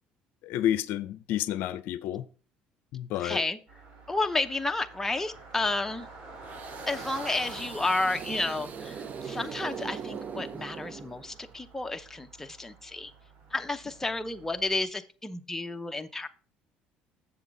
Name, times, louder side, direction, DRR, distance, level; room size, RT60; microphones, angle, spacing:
voice 1, 0.4-2.3 2.9-3.4, left 12 dB, 70° left, 0.5 m, -30 dB
voice 2, 3.2-3.6 4.1-6.1 6.9-13.1 13.5-16.3, left 2 dB, 10° left, 0.7 m, -31 dB
Car passing by, 3.7-14.8, right 3 dB, 75° right, 3.3 m, -48 dB
sound 1, 6.4-11.5, right 6 dB, 45° right, 0.7 m, -40 dB
7.2 x 7.0 x 3.9 m
supercardioid pair, 85°, 4 cm